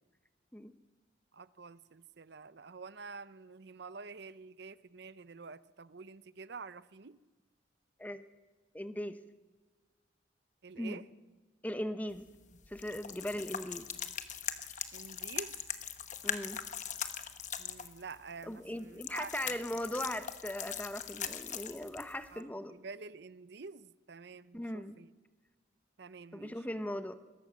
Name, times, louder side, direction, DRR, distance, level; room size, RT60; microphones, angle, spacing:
voice 1, 1.3-7.2 10.6-11.0 14.9-15.5 17.6-19.5 20.0-20.1 22.3-25.1 26.0-26.7, right 4 dB, 55° right, 16 dB, 0.7 m, -48 dB
voice 2, 8.7-9.2 10.8-11.0 11.6-12.3 12.7-13.9 16.2-16.6 18.5-22.7 24.5-25.0 26.3-27.1, left 1 dB, 10° left, 11 dB, 0.9 m, -39 dB
sound 1, 12.1-22.4, left 9 dB, 40° left, 1.1 m, -41 dB
21.5 x 17.0 x 7.4 m, 1.3 s
head